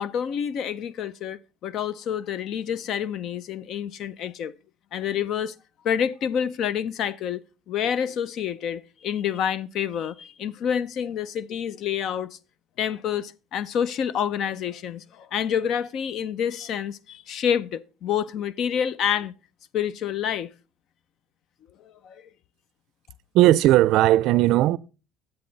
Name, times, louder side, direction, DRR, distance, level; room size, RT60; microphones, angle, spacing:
voice 1, 0.0-4.5 4.9-5.5 5.8-7.4 7.7-12.4 12.8-19.3 19.7-20.5 21.8-22.3, left 8 dB, 55° left, 0.5 m, -28 dB
voice 2, 23.3-24.8, right 15 dB, 65° right, 0.4 m, -17 dB
10.5 x 7.8 x 4.0 m
cardioid pair, 155°, 0 cm